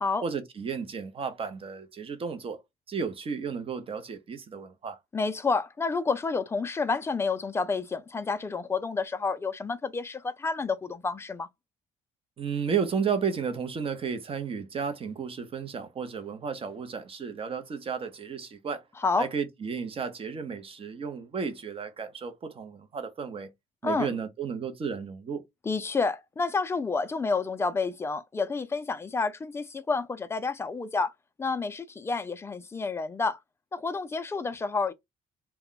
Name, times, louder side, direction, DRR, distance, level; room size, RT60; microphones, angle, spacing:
voice 1, 0.2-2.6 2.9-5.0 12.4-18.8 19.2-23.5 23.8-25.4, right 6 dB, 35° right, 0.7 m, -33 dB
voice 2, 5.1-11.5 19.0-19.3 23.8-24.1 25.6-31.1 31.4-33.4 33.7-34.9, left 4 dB, 15° left, 0.4 m, -29 dB
2.2 x 2.1 x 3.7 m
cardioid pair, 110°, 17 cm